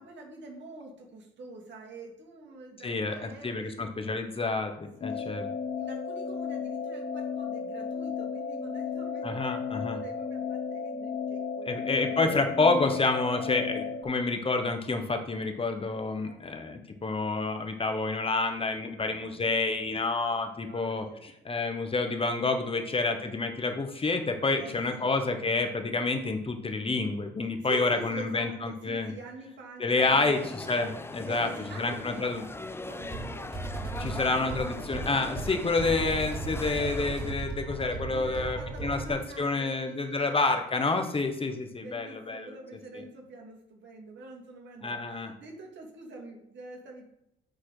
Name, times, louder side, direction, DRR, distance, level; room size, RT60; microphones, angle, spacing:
voice 1, 0.0-4.1 5.0-5.4 5.8-9.6 10.0-12.0 16.2-16.6 19.0-20.0 20.6-21.2 22.8-23.0 24.5-25.1 27.6-30.4 31.2-33.3 33.9-34.6 38.1-40.2 41.0-47.0, right 3 dB, 65° right, -1 dB, 2.3 m, -46 dB
voice 2, 2.8-5.5 9.2-10.0 11.6-29.1 29.8-31.5 31.8-32.4 34.0-42.5 44.8-45.3, left 3 dB, 30° left, 6 dB, 1.1 m, -29 dB
sound 1, 5.0-14.0, left 6 dB, 55° left, 0.9 m, -34 dB
sound 2, 30.0-37.3, left 2 dB, 10° left, 0.5 m, -41 dB
sound 3, 33.0-39.1, right 2 dB, 25° right, 3.2 m, -36 dB
8.4 x 4.2 x 4.9 m, 0.84 s
cardioid pair, 90°, 20 cm